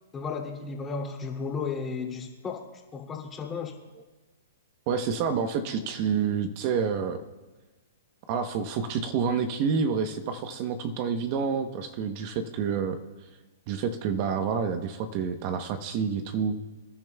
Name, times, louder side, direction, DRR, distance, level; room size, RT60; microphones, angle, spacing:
voice 1, 0.1-2.6 2.9-3.7, left 5 dB, 15° left, -1 dB, 2.6 m, -34 dB
voice 2, 4.9-7.2 8.3-13.3 13.7-16.6, right 6 dB, 40° right, 8 dB, 0.9 m, -28 dB
26.0 x 11.0 x 2.3 m, 1.2 s
hypercardioid pair, 135°, 0 cm